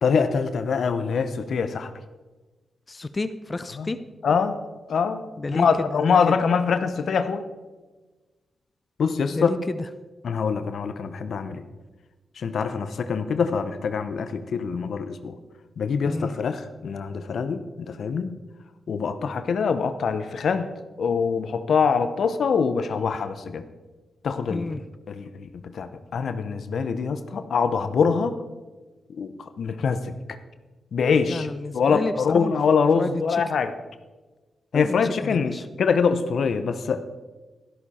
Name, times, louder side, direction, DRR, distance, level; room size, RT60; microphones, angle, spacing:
voice 1, 0.0-1.9 3.8-3.9 4.2-4.6 4.9-5.2 5.5-7.5 9.0-9.5 10.2-11.6 12.4-15.4 15.8-18.3 18.9-20.7 21.0-23.7 24.2-24.7 25.1-25.5 25.7-28.4 29.1-30.2 30.9-31.5 31.7-33.7 34.7-37.0, left 5 dB, 75° left, 10 dB, 0.8 m, -24 dB
voice 2, 2.9-4.0 5.4-6.3 9.3-9.9 16.0-16.4 24.5-24.8 31.3-32.5 32.9-33.4 34.7-35.7, left 3 dB, 35° left, 11 dB, 0.6 m, -30 dB
12.5 x 12.0 x 4.3 m, 1.2 s
supercardioid pair, 50°, 0 cm